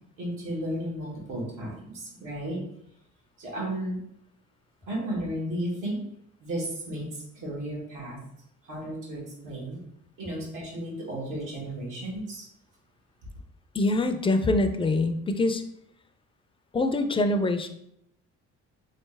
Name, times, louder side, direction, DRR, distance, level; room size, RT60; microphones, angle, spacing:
voice 1, 0.2-2.6 3.4-4.0 4.9-6.0 6.4-8.3 8.6-9.8 10.2-12.5, right 1 dB, 80° right, -4 dB, 1.5 m, -34 dB
voice 2, 13.7-15.6 16.7-17.7, left 2 dB, 15° left, 8 dB, 0.4 m, -24 dB
3.3 x 2.8 x 3.3 m, 0.76 s
cardioid pair, 80°, 32 cm